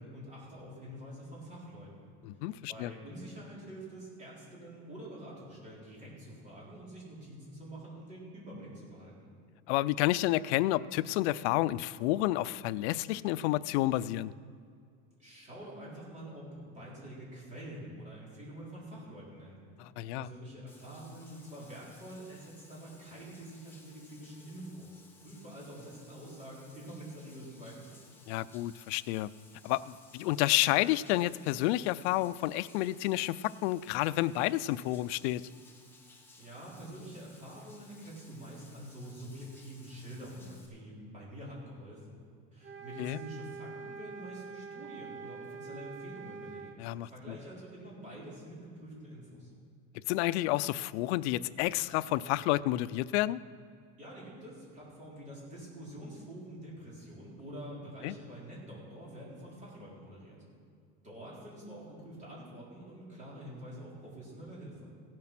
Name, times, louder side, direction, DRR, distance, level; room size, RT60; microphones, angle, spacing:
voice 1, 0.0-2.1 2.5-9.3 15.2-19.6 20.1-28.0 36.4-42.2 42.5-46.7 47.0-49.5 54.0-60.4 61.0-64.9, right 1 dB, 20° right, -5 dB, 3.8 m, -46 dB
voice 2, 2.2-2.9 9.7-14.3 19.8-20.3 28.3-29.3 29.6-35.4 43.0-43.2 46.8-47.3 50.1-53.4 58.0-58.1, left 16 dB, 90° left, 18 dB, 0.5 m, -30 dB
Bathtub (filling or washing), 20.7-40.7, left 3 dB, 5° left, 1.2 m, -59 dB
sound 1, 42.6-46.8, right 5 dB, 40° right, 0.8 m, -45 dB
16.0 x 7.6 x 5.9 m, 2.3 s
cardioid pair, 165°, 33 cm